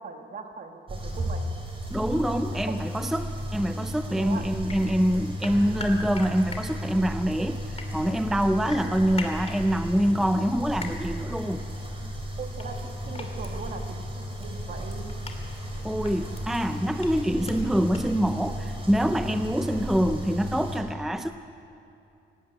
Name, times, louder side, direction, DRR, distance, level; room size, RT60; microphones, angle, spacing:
voice 1, 0.0-1.6 2.3-2.8 4.2-4.5 12.4-15.1, right 4 dB, 45° right, 5 dB, 1.7 m, -40 dB
sound 1, 0.9-20.8, equal, 25° right, 4.3 m, -34 dB
voice 2, 1.9-11.6 15.8-21.3, equal, ahead, 8 dB, 0.5 m, -25 dB
sound 2, 4.7-4.8 5.4-6.6 7.5-7.9 8.7-9.6 10.8-10.9 12.6-12.8 13.1-13.5 14.4-14.5 14.9-15.4 16.0-16.4 17.0-17.1 17.5-17.6 17.9-18.0, left 3 dB, 30° left, 2.6 m, -39 dB
19.0 x 17.0 x 8.7 m, 2.7 s
cardioid pair, 130°, 20 cm